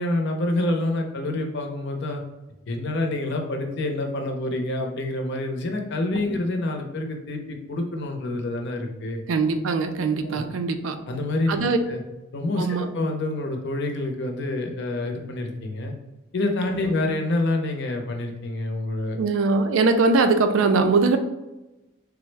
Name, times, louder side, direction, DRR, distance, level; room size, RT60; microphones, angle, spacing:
voice 1, 0.0-2.2 2.7-9.2 10.2-10.4 11.1-12.0 12.3-12.7 12.9-15.9 16.3-19.2, left 2 dB, 60° left, 3 dB, 0.6 m, -27 dB
voice 2, 9.3-11.0 11.5-11.8 12.6-12.9 16.8-16.9 19.2-21.2, right 4 dB, 75° right, 7 dB, 0.4 m, -21 dB
3.4 x 2.0 x 3.2 m, 1.0 s
head